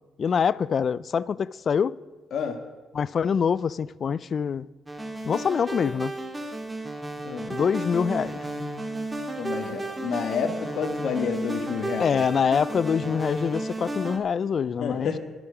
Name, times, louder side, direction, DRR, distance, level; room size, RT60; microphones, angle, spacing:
voice 1, 0.2-2.0 2.9-4.7 5.2-6.1 7.5-8.4 12.0-15.1, left 6 dB, 50° left, 0.4 m, -25 dB
sound 1, 4.9-14.2, right 1 dB, 20° right, 1.8 m, -33 dB
voice 2, 9.4-12.2 14.8-15.2, left 6 dB, 70° left, 1.5 m, -29 dB
21.0 x 7.0 x 5.0 m
cardioid pair, 90°, 0 cm